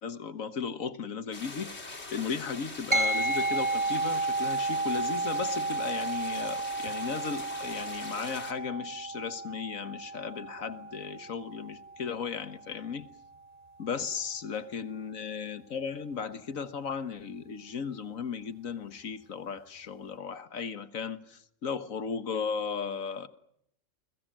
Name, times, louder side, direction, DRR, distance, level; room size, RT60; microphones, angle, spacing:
voice 1, 0.0-13.1 13.8-23.3, left 6 dB, 70° left, 1.7 m, -36 dB
sound 1, 1.3-8.5, left 3 dB, 50° left, 3.0 m, -43 dB
sound 2, 2.9-12.6, right 2 dB, 25° right, 2.7 m, -32 dB
29.5 x 21.5 x 7.5 m
omnidirectional pair, 1.4 m